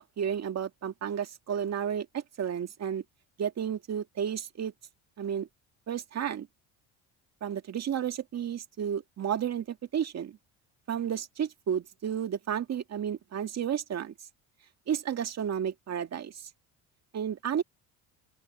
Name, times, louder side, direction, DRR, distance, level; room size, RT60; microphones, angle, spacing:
voice 1, 0.0-3.0 3.4-4.7 5.2-5.5 5.9-6.5 7.4-10.4 10.9-14.1 14.9-16.5 17.1-17.6, right 8 dB, 45° right, 2.1 m, -32 dB
open air
cardioid pair, 100°, 38 cm